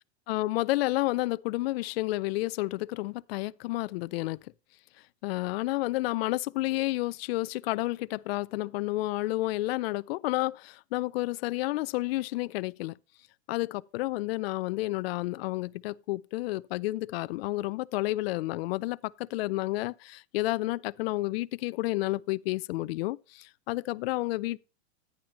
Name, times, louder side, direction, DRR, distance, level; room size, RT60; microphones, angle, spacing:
voice 1, 0.3-4.4 5.2-13.0 13.5-24.6, left 19 dB, 65° left, 0.5 m, -30 dB
10.5 x 10.0 x 2.9 m
supercardioid pair, 135°, 33 cm